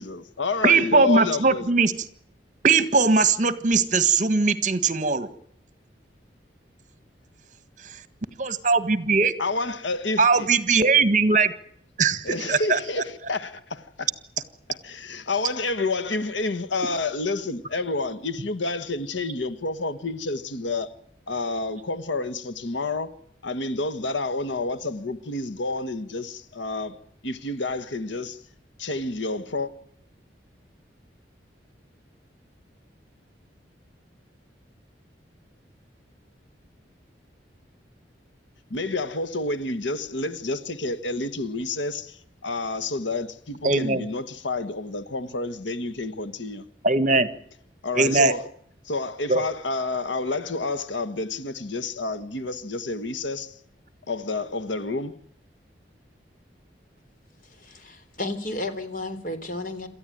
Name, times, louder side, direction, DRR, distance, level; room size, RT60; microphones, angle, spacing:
voice 1, 0.0-1.7 9.4-10.5 12.2-14.1 14.7-20.9 21.3-23.1 23.4-27.0 27.2-28.4 28.8-29.7 38.7-46.6 47.8-48.5 48.8-53.5 54.1-55.2, left 3 dB, 85° left, 1.5 m, -29 dB
voice 2, 0.6-1.9 2.6-5.3 8.4-9.3 10.2-11.5 12.0-12.8 43.6-44.0 46.8-47.3 47.9-48.3 49.3-49.4, right 4 dB, 45° right, 1.6 m, -20 dB
voice 3, 57.4-59.9, left 2 dB, 45° left, 3.6 m, -33 dB
27.5 x 14.0 x 9.2 m
head